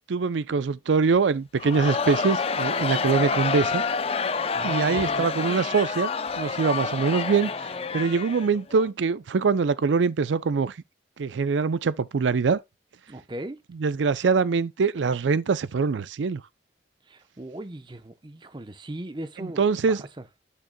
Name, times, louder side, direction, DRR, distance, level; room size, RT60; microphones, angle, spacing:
voice 1, 0.1-3.8 4.6-6.1 6.4-7.5 7.9-10.7 11.2-12.6 13.7-16.4 19.4-20.0, right 5 dB, 90° right, 0.4 m, -23 dB
Crowd, 1.6-8.9, left 5 dB, 30° left, 0.5 m, -28 dB
voice 2, 4.5-5.4 13.1-13.6 17.1-20.1, right 1 dB, 25° right, 0.7 m, -38 dB
9.0 x 6.4 x 2.2 m
head